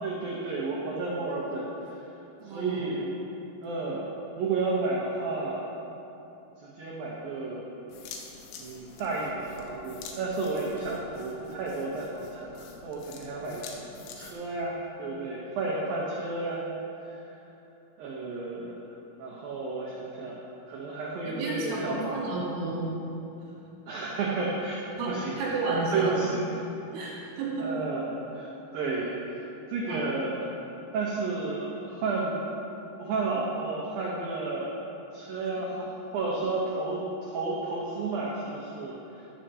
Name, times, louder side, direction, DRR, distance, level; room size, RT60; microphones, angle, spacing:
voice 1, 0.0-2.0 2.4-3.0 3.6-4.0 4.4-5.6 6.6-7.6 8.6-13.6 14.1-16.7 17.0-17.1 18.0-18.9 19.2-22.2 23.9-24.8 25.1-25.5 25.9-26.4 27.0-27.1 27.6-28.5 28.7-30.5 30.9-32.5 33.0-34.7 35.1-39.3, right 3 dB, 90° right, -5 dB, 2.0 m, -32 dB
voice 2, 2.4-2.9 21.3-22.9 25.0-26.3 26.9-27.8 29.9-30.0, right 3 dB, 70° right, -6 dB, 4.3 m, -31 dB
sound 1, 7.9-14.3, left 5 dB, 80° left, 3.5 m, -47 dB
13.0 x 13.0 x 2.9 m, 2.9 s
omnidirectional pair, 5.9 m